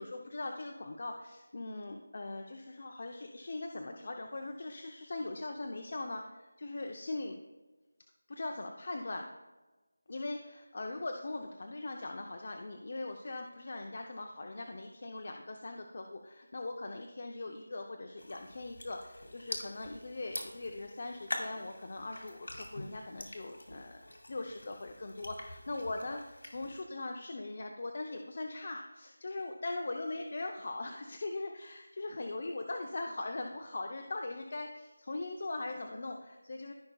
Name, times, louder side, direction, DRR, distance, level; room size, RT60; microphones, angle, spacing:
voice 1, 0.0-7.4 8.3-9.3 10.1-36.7, left 2 dB, 40° left, 3 dB, 0.7 m, -40 dB
sound 1, 18.2-26.8, left 1 dB, 85° left, 2.3 m, -45 dB
15.0 x 5.3 x 2.3 m, 1.2 s
figure-of-eight pair, 175°, 0 cm